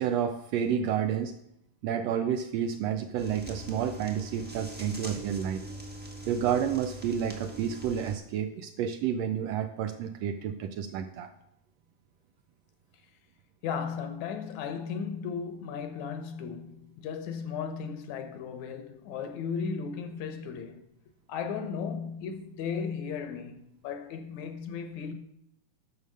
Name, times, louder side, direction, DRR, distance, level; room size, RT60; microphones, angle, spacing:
voice 1, 0.0-1.3 1.8-5.6 6.3-11.3, right 8 dB, 80° right, 1.6 m, -30 dB
sound 1, 3.2-8.2, right 1 dB, 10° right, 0.4 m, -42 dB
voice 2, 13.6-20.8 21.3-25.1, left 6 dB, 75° left, 2.2 m, -35 dB
9.2 x 6.5 x 6.4 m
omnidirectional pair, 3.4 m